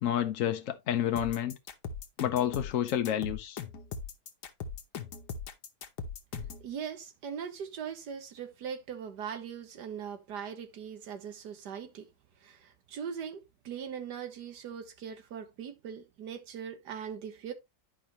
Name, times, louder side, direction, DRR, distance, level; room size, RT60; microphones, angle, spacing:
voice 1, 0.0-1.6 2.2-3.6, left 10 dB, 60° left, 0.9 m, -29 dB
sound 1, 1.2-6.7, left 5 dB, 90° left, 1.5 m, -39 dB
voice 2, 6.6-12.1 12.4-17.5, right 7 dB, 85° right, 1.7 m, -40 dB
10.5 x 5.0 x 2.9 m
omnidirectional pair, 1.7 m